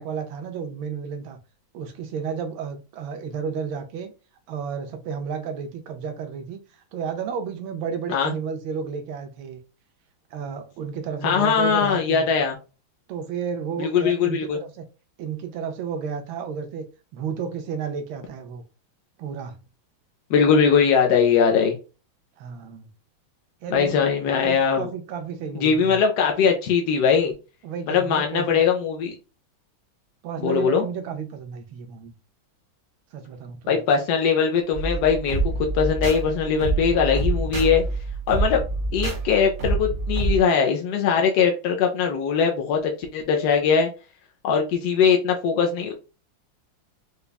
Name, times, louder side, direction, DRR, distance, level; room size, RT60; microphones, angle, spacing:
voice 1, 0.0-1.4 1.7-4.1 4.5-6.6 6.9-9.6 10.3-12.3 13.1-14.9 15.2-16.9 17.1-18.6 19.2-19.6 22.4-22.9 23.6-24.1 24.4-26.0 27.6-28.6 30.2-32.1 33.1-33.8, right 6 dB, 85° right, 1.4 m, -32 dB
voice 2, 11.2-12.6 13.8-14.6 20.3-21.8 23.7-24.9 25.5-27.3 27.9-29.1 30.4-30.8 33.7-37.8 38.3-38.6 38.9-43.9 44.4-46.0, left 6 dB, 70° left, 1.0 m, -21 dB
sound 1, 34.7-40.4, right 2 dB, 55° right, 1.2 m, -26 dB
5.0 x 2.2 x 2.3 m
omnidirectional pair, 2.2 m